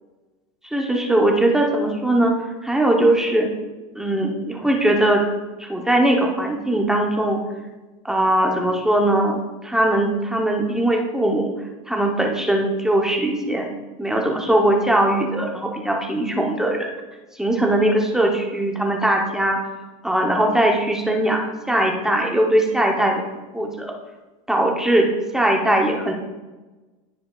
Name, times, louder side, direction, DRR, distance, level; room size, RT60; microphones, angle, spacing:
voice 1, 0.7-2.3 2.6-3.5 3.9-5.2 5.6-7.4 8.0-11.5 11.9-13.7 14.0-16.9 17.4-19.6 20.0-21.4 21.7-23.2 23.5-23.9 24.5-26.1, right 1 dB, 5° right, 0 dB, 0.8 m, -20 dB
13.5 x 4.7 x 2.4 m, 1.2 s
supercardioid pair, 145°, 17 cm